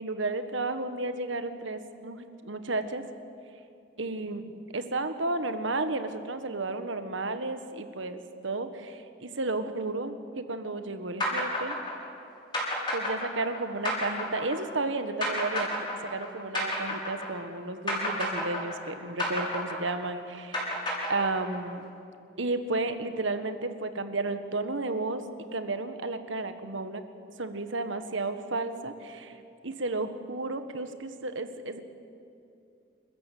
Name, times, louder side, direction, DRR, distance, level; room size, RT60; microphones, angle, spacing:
voice 1, 0.0-3.0 4.0-11.8 12.9-15.7 16.0-20.7 21.1-21.8 22.4-25.2 25.5-27.0 27.4-29.4 29.6-31.8, right 2 dB, 75° right, 9 dB, 1.5 m, -32 dB
sound 1, 11.2-17.6 17.9-21.7, left 1 dB, 20° left, 6.3 m, -31 dB
28.5 x 14.0 x 8.4 m, 2.6 s
head